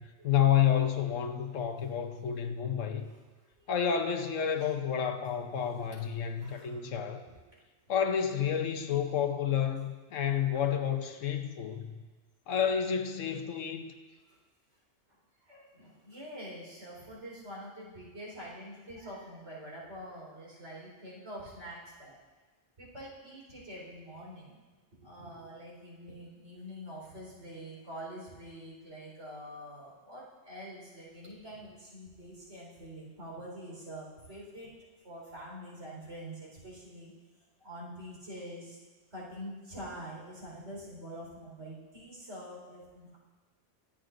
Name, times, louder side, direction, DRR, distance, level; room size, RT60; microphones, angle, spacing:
voice 1, 0.0-3.1 3.7-7.2 7.9-12.0 12.5-13.9, left 8 dB, 85° left, 6 dB, 1.2 m, -30 dB
voice 2, 6.4-6.9 7.3-7.4 10.5-10.6 14.3-14.4 15.4-22.2 22.8-24.6 25.0-34.7 35.0-37.1 37.6-38.8 39.1-43.2, equal, 65° right, -5 dB, 4.6 m, -46 dB
23.0 x 8.8 x 2.6 m, 1.3 s
omnidirectional pair, 1.3 m